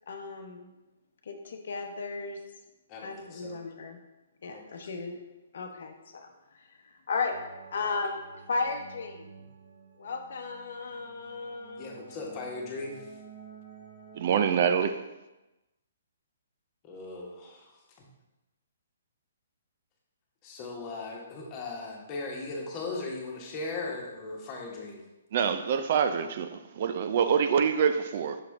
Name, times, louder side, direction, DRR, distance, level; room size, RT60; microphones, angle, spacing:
voice 1, 0.1-0.7 1.2-2.4 3.0-4.0 4.4-5.2 5.5-7.4 7.7-8.2 8.5-9.3 10.0-11.9, left 4 dB, 65° left, 4 dB, 0.8 m, -35 dB
voice 2, 2.9-3.6 4.4-4.6 11.8-13.1 16.9-17.6 20.4-25.0, left 3 dB, 30° left, -2 dB, 1.4 m, -38 dB
sound 1, 7.3-14.7, right 6 dB, 85° right, 1.4 m, -51 dB
voice 3, 14.1-15.0 25.3-28.4, right 7 dB, 50° right, 9 dB, 0.4 m, -26 dB
5.8 x 4.8 x 3.5 m, 1.0 s
hypercardioid pair, 140°, 0 cm